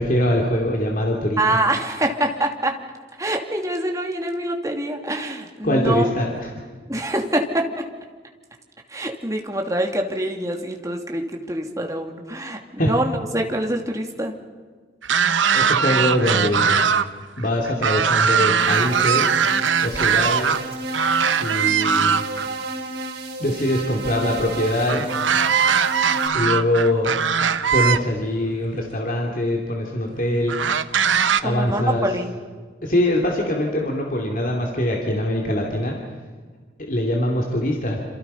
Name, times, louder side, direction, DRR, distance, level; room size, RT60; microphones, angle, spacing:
voice 1, 0.0-1.6 5.6-6.5 12.8-12.9 15.5-16.8 17.4-19.4 19.8-20.6 21.4-22.2 23.4-25.1 26.3-27.1 27.7-30.6 31.4-32.0 32.8-36.0 36.8-38.1, left 1 dB, 45° left, 0 dB, 2.9 m, -23 dB
voice 2, 1.4-2.8 3.2-6.1 6.9-7.6 8.9-14.3 31.4-32.3, right 1 dB, 15° right, 2 dB, 2.6 m, -25 dB
sound 1, 15.0-17.1 17.4-20.6 20.9-22.5 24.9-28.0 28.9-29.0 30.5-31.4, right 6 dB, 85° right, 1.0 m, -20 dB
sound 2, 18.6-26.3, right 2 dB, 55° right, 5.2 m, -31 dB
28.0 x 27.5 x 5.7 m, 1.5 s
head